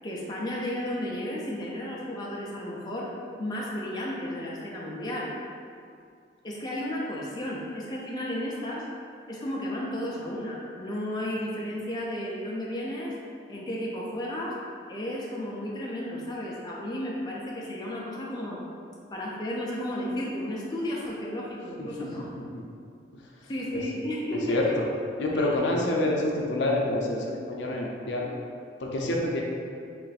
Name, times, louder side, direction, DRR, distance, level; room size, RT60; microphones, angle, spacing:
voice 1, 0.0-3.1 3.4-5.3 6.4-8.9 9.3-13.1 13.5-14.6 14.9-18.6 19.1-22.3 23.5-24.8 25.3-25.6, left 1 dB, 25° left, -4 dB, 0.4 m, -33 dB
voice 2, 21.8-22.6 24.5-24.9 25.2-28.3 28.8-29.4, left 1 dB, 80° left, -1 dB, 0.5 m, -27 dB
3.1 x 2.5 x 4.0 m, 2.3 s
head